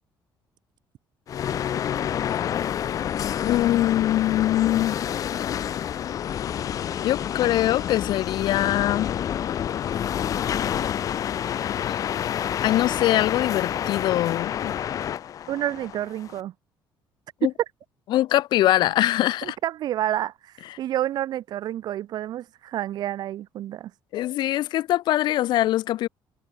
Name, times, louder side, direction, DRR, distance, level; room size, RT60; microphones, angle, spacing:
sound 1, 1.3-16.4, left 10 dB, 45° left, 1.5 m, -28 dB
voice 1, 3.4-5.0 7.0-9.1 12.3-14.7 17.4-17.5 18.1-19.6 24.1-26.1, left 14 dB, 70° left, 2.8 m, -23 dB
voice 2, 15.5-16.5 19.4-23.9, right 12 dB, 60° right, 5.0 m, -29 dB
cardioid pair, 150°, 8 cm